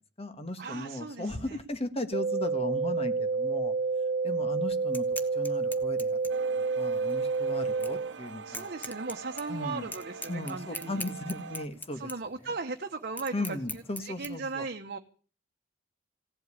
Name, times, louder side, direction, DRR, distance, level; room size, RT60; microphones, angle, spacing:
voice 1, 0.0-3.7 4.2-5.1 5.3-6.2 6.7-8.7 9.5-9.9 10.3-12.1 13.3-14.7, left 1 dB, 35° left, 9 dB, 1.6 m, -36 dB
voice 2, 0.6-1.6 8.4-11.0 12.0-15.0, right 4 dB, 55° right, 4 dB, 1.0 m, -37 dB
sound 1, 2.1-8.1, right 4 dB, 40° right, 0.7 m, -29 dB
sound 2, 4.8-14.3, left 2 dB, 10° left, 1.2 m, -44 dB
sound 3, 6.3-11.7, right 5 dB, 85° right, 0.8 m, -44 dB
17.0 x 8.2 x 9.7 m, 0.40 s
head